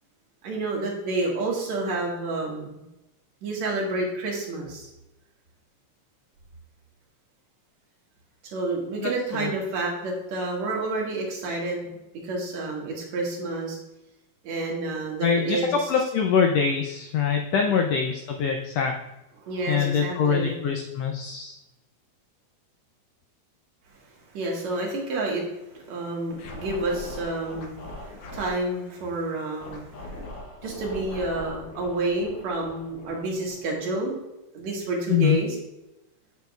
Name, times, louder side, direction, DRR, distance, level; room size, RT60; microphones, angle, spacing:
voice 1, 0.4-2.9 3.4-4.9 8.5-11.9 12.2-13.8 14.4-15.9 17.7-17.8 19.4-20.6 24.3-25.4 25.7-30.3 30.6-34.2 34.5-35.6, right 2 dB, 65° right, -2 dB, 2.6 m, -29 dB
voice 2, 15.2-15.6 15.9-18.9 19.7-21.6 35.1-35.4, left 7 dB, 85° left, 3 dB, 1.4 m, -24 dB
Scratching (performance technique), 26.4-28.7 29.6-33.9, left 1 dB, 60° left, 1.8 m, -41 dB
8.1 x 6.7 x 2.3 m, 0.95 s
omnidirectional pair, 3.5 m